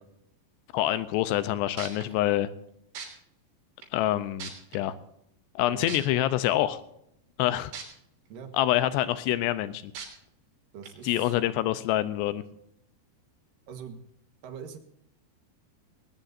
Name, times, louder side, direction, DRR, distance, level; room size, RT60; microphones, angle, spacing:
voice 1, 0.7-2.5 3.9-4.9 5.6-6.8 7.4-7.7 8.5-9.9 11.0-12.4, left 13 dB, 80° left, 13 dB, 2.8 m, -26 dB
sound 1, 1.4-1.5 1.8-2.0 3.0-3.1 3.8-3.9 4.4-4.8 5.9-6.0 7.7-7.8 8.4-8.5 10.0-10.1 10.8-10.9, right 6 dB, 90° right, 5.6 m, -38 dB
voice 2, 10.7-11.4 13.7-14.0 14.4-14.8, right 7 dB, 60° right, 6 dB, 2.7 m, -42 dB
20.0 x 18.5 x 2.6 m, 0.75 s
omnidirectional pair, 5.1 m